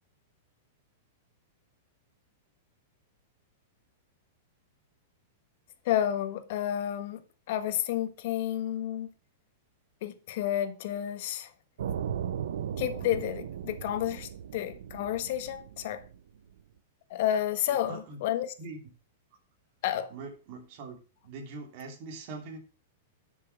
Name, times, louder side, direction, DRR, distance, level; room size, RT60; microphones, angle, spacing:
voice 1, 5.8-7.2 7.5-9.1 10.0-11.5 12.8-16.1 17.1-18.5 19.8-20.1, left 11 dB, 55° left, 1.5 m, -31 dB
sound 1, 11.8-16.6, right 9 dB, 85° right, 0.9 m, -37 dB
voice 2, 17.7-18.2 18.6-18.8 20.1-21.0 21.2-22.6, right 3 dB, 45° right, 3.1 m, -42 dB
11.0 x 6.4 x 6.0 m
supercardioid pair, 150°, 0 cm